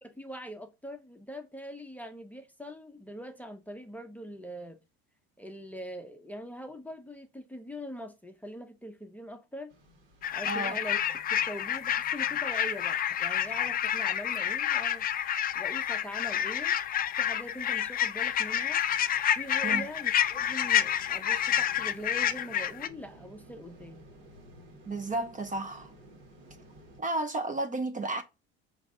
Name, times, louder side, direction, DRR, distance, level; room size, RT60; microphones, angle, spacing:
voice 1, 0.0-4.8 5.4-9.7 10.3-11.0 11.3-15.1 15.5-16.8 17.2-18.8 19.3-24.0, equal, 5° left, 0.7 m, -42 dB
sound 1, 9.7-27.0, equal, 80° right, 2.0 m, -56 dB
sound 2, 10.2-22.9, left 10 dB, 30° left, 0.4 m, -29 dB
voice 2, 10.5-10.8 19.6-19.9 24.8-25.9 27.0-28.2, right 2 dB, 25° right, 0.7 m, -32 dB
4.9 x 3.3 x 2.7 m
supercardioid pair, 85°, 31 cm